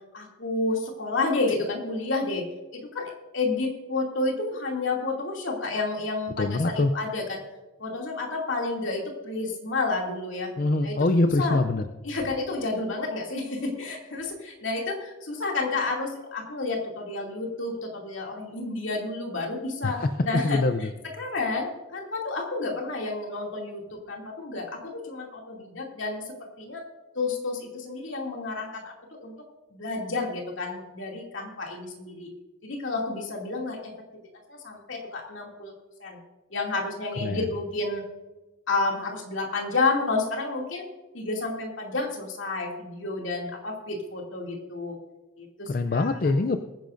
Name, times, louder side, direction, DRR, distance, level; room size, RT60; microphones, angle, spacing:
voice 1, 0.1-7.4 7.8-10.5 10.8-11.1 11.4-11.6 12.0-20.6 21.0-26.2 26.6-26.8 27.1-29.3 29.7-32.3 32.6-33.9 34.5-35.7 36.0-36.2 36.5-38.0 38.7-40.9 41.1-45.0 45.4-46.2, left 3 dB, 65° left, 0 dB, 2.6 m, -30 dB
voice 2, 6.4-6.9 10.6-11.8 19.8-20.1 20.4-20.9 37.2-37.5 45.7-46.6, left 2 dB, 45° left, 8 dB, 0.4 m, -24 dB
23.0 x 10.0 x 2.6 m, 1.1 s
head